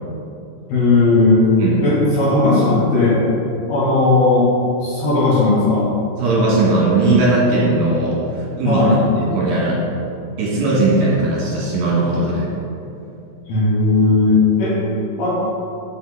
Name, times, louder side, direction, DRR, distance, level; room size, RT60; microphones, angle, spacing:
voice 1, 0.7-1.5 1.8-3.2 3.7-4.5 4.8-5.9 8.6-9.0 13.5-14.8 15.2-15.3, left 3 dB, 60° left, -8 dB, 3.0 m, -16 dB
voice 2, 6.2-8.9 9.2-9.8 10.4-12.5, right 2 dB, 50° right, -6 dB, 3.3 m, -18 dB
9.2 x 7.9 x 4.1 m, 2.8 s
omnidirectional pair, 6.0 m